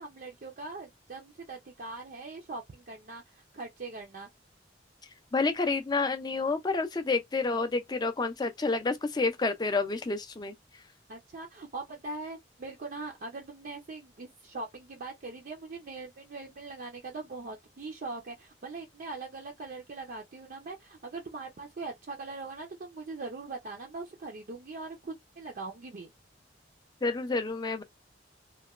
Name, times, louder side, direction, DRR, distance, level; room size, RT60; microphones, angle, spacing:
voice 1, 0.0-4.3 11.1-26.1, right 3 dB, 50° right, 0.4 m, -41 dB
voice 2, 5.3-10.5 27.0-27.8, left 3 dB, 20° left, 0.4 m, -29 dB
2.9 x 2.1 x 2.3 m
head